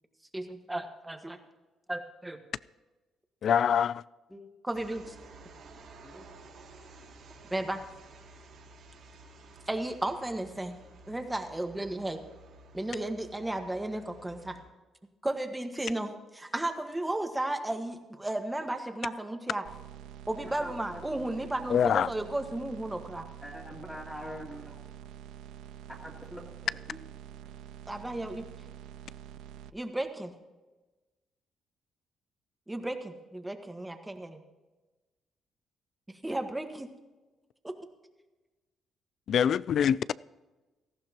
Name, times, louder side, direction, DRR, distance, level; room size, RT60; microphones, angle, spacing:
voice 1, 0.3-1.4 1.9-2.4 4.6-5.1 7.5-7.8 9.7-10.7 11.1-12.2 12.7-14.6 15.2-19.6 20.3-23.3 27.9-28.5 29.7-30.3 32.7-34.4 36.1-36.9 37.6-37.7, right 1 dB, 10° right, 6 dB, 1.5 m, -34 dB
voice 2, 3.4-4.0 21.7-22.1 39.3-40.1, left 8 dB, 60° left, 20 dB, 0.3 m, -24 dB
sound 1, 4.7-14.6, right 2 dB, 70° right, 4.1 m, -53 dB
sound 2, 19.6-29.7, right 10 dB, 90° right, 0.4 m, -47 dB
voice 3, 20.4-21.0 23.4-24.7 25.9-27.0, equal, 5° left, -7 dB, 2.6 m, -44 dB
18.0 x 14.5 x 3.0 m, 1.2 s
cardioid pair, 90°, 0 cm